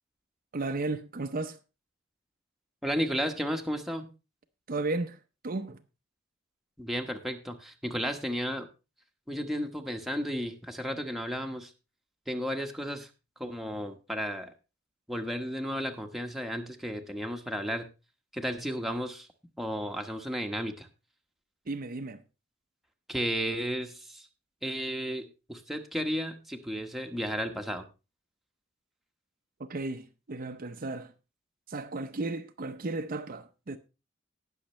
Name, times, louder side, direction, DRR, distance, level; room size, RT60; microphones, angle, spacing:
voice 1, 0.5-1.6 4.7-5.2 5.4-5.8 21.7-22.2 29.6-31.1 31.7-33.8, right 2 dB, 45° right, 0.6 m, -34 dB
voice 2, 2.8-4.1 6.8-8.7 9.3-11.7 12.3-13.1 13.4-14.5 15.1-17.9 18.3-19.3 19.6-20.9 23.1-24.3 24.6-27.9, equal, ahead, 1.1 m, -33 dB
18.5 x 6.5 x 3.2 m
head